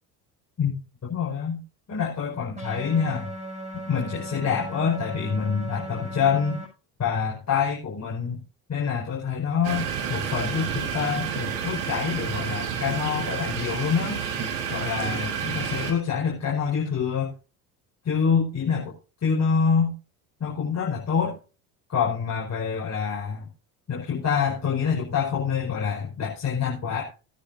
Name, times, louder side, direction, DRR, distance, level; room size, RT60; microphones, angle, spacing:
voice 1, 0.6-1.6 1.9-3.3 3.7-6.6 7.0-8.4 8.7-14.2 14.7-17.3 18.0-18.9 19.2-19.9 20.4-21.4 21.9-23.5 23.9-27.0, left 6 dB, 35° left, -4 dB, 5.4 m, -26 dB
sound 1, 2.6-6.7, right 1 dB, 15° right, 7.3 m, -37 dB
sound 2, 9.6-15.9, right 7 dB, 70° right, 3.7 m, -30 dB
20.0 x 9.6 x 2.7 m, 0.34 s
hypercardioid pair, 75°, 46 cm